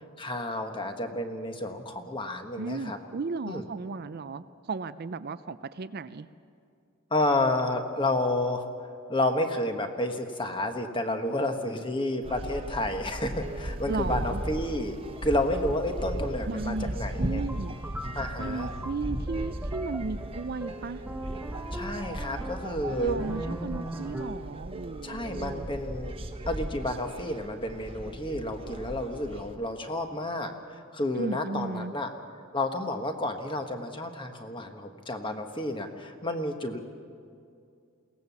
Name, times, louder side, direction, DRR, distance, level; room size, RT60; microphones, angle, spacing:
voice 1, 0.2-3.0 3.5-3.6 7.1-8.6 9.1-15.0 15.2-17.4 18.1-18.7 21.7-23.2 25.0-26.2 26.5-32.1 32.5-36.8, left 1 dB, 25° left, 6 dB, 1.3 m, -30 dB
voice 2, 2.6-6.3 13.9-14.4 16.5-16.9 17.2-17.7 18.4-21.0 23.0-25.7 31.2-32.0, right 3 dB, 45° right, 12 dB, 0.5 m, -35 dB
sound 1, 12.2-29.5, right 1 dB, 25° right, 1.2 m, -36 dB
sound 2, 17.5-24.6, right 1 dB, 10° right, 0.7 m, -39 dB
22.0 x 18.0 x 7.1 m, 2.4 s
head